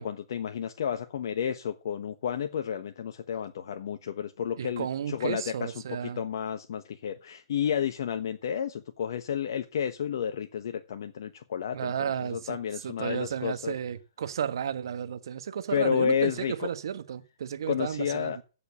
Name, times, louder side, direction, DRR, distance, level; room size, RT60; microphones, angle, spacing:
voice 1, 0.0-13.7 15.7-16.7 17.7-18.4, left 8 dB, 65° left, 1.2 m, -31 dB
voice 2, 4.6-6.2 11.7-12.6 12.8-18.4, right 8 dB, 70° right, 1.4 m, -33 dB
15.5 x 5.2 x 7.3 m
hypercardioid pair, 135°, 2 cm